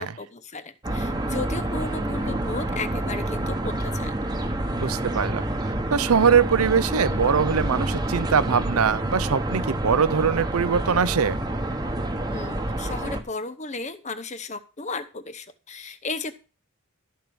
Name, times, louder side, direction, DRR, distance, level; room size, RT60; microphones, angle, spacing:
voice 1, 0.0-4.2 12.3-16.3, left 3 dB, 35° left, 0.8 m, -34 dB
sound 1, 0.8-13.2, right 1 dB, 20° right, 1.1 m, -28 dB
voice 2, 4.8-5.4 5.9-11.4, right 6 dB, 85° right, 0.6 m, -22 dB
12.5 x 4.7 x 6.9 m
head